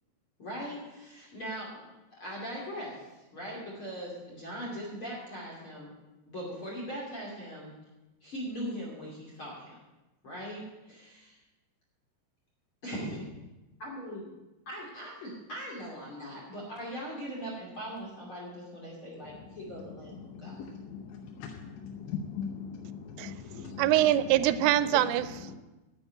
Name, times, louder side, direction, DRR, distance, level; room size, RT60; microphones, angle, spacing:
voice 1, 0.4-5.9 6.2-7.7 8.2-9.8 10.2-11.4 12.8-13.3 13.8-14.3 14.7-20.6, equal, 35° left, -4 dB, 2.5 m, -40 dB
voice 2, 20.3-24.1, left 6 dB, 75° left, 3 dB, 2.9 m, -40 dB
voice 3, 23.8-25.4, right 13 dB, 90° right, 14 dB, 3.2 m, -24 dB
9.7 x 8.1 x 9.4 m, 1.1 s
omnidirectional pair, 5.6 m